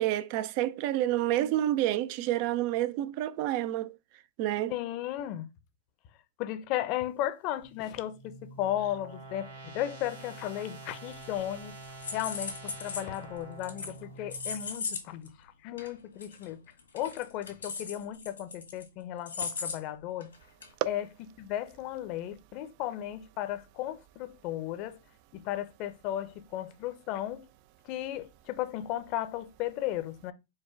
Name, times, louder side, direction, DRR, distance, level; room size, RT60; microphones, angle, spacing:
voice 1, 0.0-3.9 4.4-4.7, right 13 dB, 50° right, 0.4 m, -29 dB
voice 2, 4.7-5.5 6.4-11.8 12.1-16.6 16.9-20.3 20.9-21.1 21.4-25.0 25.3-27.4 27.8-30.3, left 12 dB, 45° left, 0.6 m, -35 dB
sound 1, 7.6-14.7, right 3 dB, 85° right, 2.3 m, -47 dB
sound 2, 11.1-11.6 11.8-13.2 13.6-14.0 14.3-15.0 15.3-15.4 15.8-15.9 16.2-16.4 16.8-18.8 19.3-19.8 20.2-20.3 20.6-20.7, left 5 dB, 85° left, 1.5 m, -37 dB
4.7 x 2.2 x 4.4 m
hypercardioid pair, 115°, 0 cm